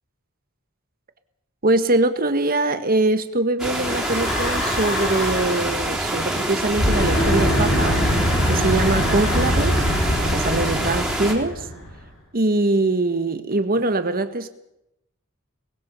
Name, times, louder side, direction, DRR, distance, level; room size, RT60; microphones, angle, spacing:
voice 1, 1.6-8.0 8.5-11.6 12.3-14.5, right 2 dB, 45° right, 1.5 m, -22 dB
sound 1, 3.6-11.3, right 1 dB, ahead, 3.8 m, -26 dB
Breathing / Wind, 3.8-5.7 6.6-12.0, equal, 70° left, 7.1 m, -24 dB
sound 2, 7.1-9.4, equal, 55° left, 8.0 m, -30 dB
23.5 x 20.5 x 5.6 m
head